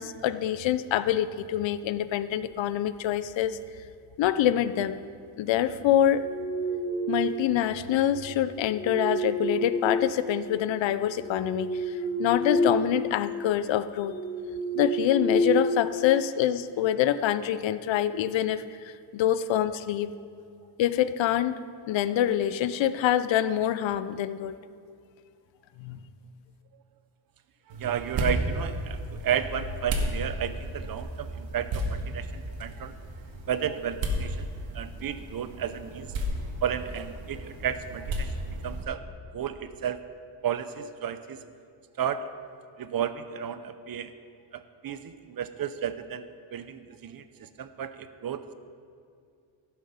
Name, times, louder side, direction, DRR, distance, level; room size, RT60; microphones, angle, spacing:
voice 1, 0.0-3.6 4.2-5.0 5.4-6.3 7.1-14.2 14.7-20.1 20.8-24.6 25.8-26.0, left 11 dB, 75° left, 14 dB, 0.6 m, -26 dB
sound 1, 6.0-7.5 8.5-10.6 11.1-13.0 13.3-13.5 14.0-16.4, equal, ahead, 0.8 m, -29 dB
voice 2, 27.7-32.9 33.5-34.5 34.7-36.1 36.6-39.0 39.3-40.0 40.4-41.4 42.0-42.3 42.8-44.1 44.5-46.2 46.5-48.4, right 9 dB, 50° right, 11 dB, 0.6 m, -33 dB
sound 2, 27.7-38.8, equal, 75° right, 1.7 m, -34 dB
15.0 x 7.0 x 5.6 m, 2.3 s
cardioid pair, 135°, 46 cm